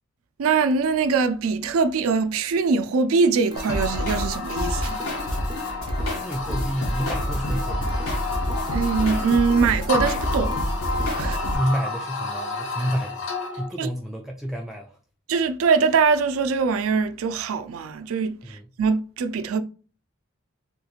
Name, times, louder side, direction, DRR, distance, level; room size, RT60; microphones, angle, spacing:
voice 1, 0.4-5.0 8.7-10.6 11.2-11.6 13.8-13.9 15.3-19.6, right 5 dB, 80° right, 0.4 m, -22 dB
sound 1, 3.5-13.7, left 3 dB, 65° left, 0.7 m, -31 dB
sound 2, 3.5-11.5, equal, 20° right, 0.7 m, -41 dB
sound 3, 3.6-11.6, equal, 80° left, 1.5 m, -28 dB
voice 2, 6.1-8.0 11.5-13.3 13.6-15.0 18.4-18.6, equal, ahead, 0.3 m, -29 dB
3.5 x 2.9 x 2.4 m
head